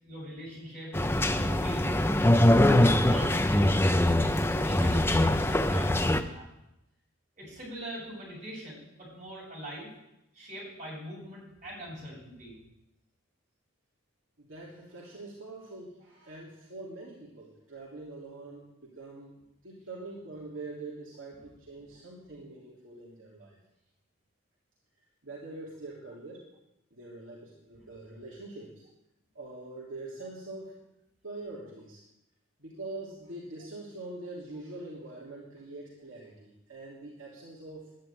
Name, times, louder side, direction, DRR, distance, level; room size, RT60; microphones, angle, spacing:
voice 1, 0.0-0.9 1.3-2.1 2.6-6.4 7.4-9.9 10.3-12.6 27.8-27.9, equal, 35° right, -5 dB, 7.7 m, -42 dB
sound 1, 0.9-6.2, left 1 dB, 10° left, 0.6 m, -23 dB
voice 2, 14.4-23.6 25.2-26.5 26.9-28.8 29.3-30.7 31.2-32.0 32.6-37.9, right 2 dB, 70° right, -5 dB, 3.2 m, -44 dB
11.0 x 10.5 x 8.9 m, 0.89 s
head